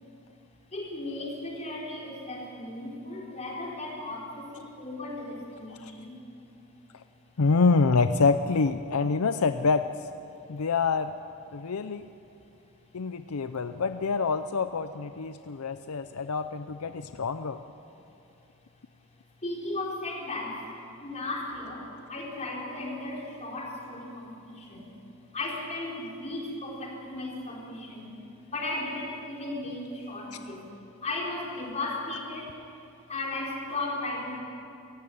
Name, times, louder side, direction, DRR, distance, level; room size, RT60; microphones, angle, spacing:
voice 1, 0.7-6.2 12.3-12.4 13.5-13.6 15.7-15.8 17.9-18.0 19.4-20.6 21.0-25.0 25.3-28.2 28.5-30.7 31.0-32.6 33.1-34.4, left 2 dB, 30° left, -2 dB, 4.3 m, -36 dB
voice 2, 7.4-10.1 10.5-11.1 11.5-12.1 12.9-17.6, left 4 dB, 80° left, 10 dB, 0.6 m, -26 dB
23.5 x 15.5 x 9.1 m, 2.7 s
head